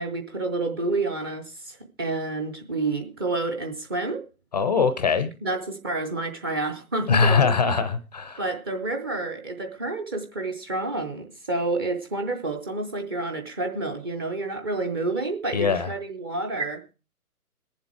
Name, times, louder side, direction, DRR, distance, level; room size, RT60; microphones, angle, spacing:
voice 1, 0.0-4.2 5.4-7.5 8.4-16.9, right 2 dB, 15° right, 5 dB, 0.6 m, -29 dB
voice 2, 4.5-5.3 7.1-8.4 15.5-15.9, left 5 dB, 30° left, 13 dB, 0.5 m, -22 dB
20.0 x 7.4 x 4.6 m, 0.32 s
figure-of-eight pair, 130°, 46 cm